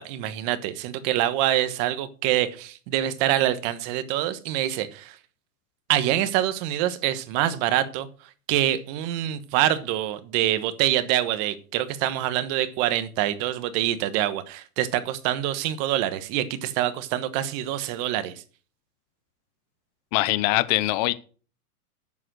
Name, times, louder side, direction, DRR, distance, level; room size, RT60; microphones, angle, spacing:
voice 1, 0.0-5.2 5.9-8.1 8.5-18.4, right 13 dB, 35° right, 1.2 m, -25 dB
voice 2, 20.1-21.1, left 18 dB, 30° left, 0.6 m, -22 dB
11.0 x 7.9 x 6.3 m
hypercardioid pair, 145°, 46 cm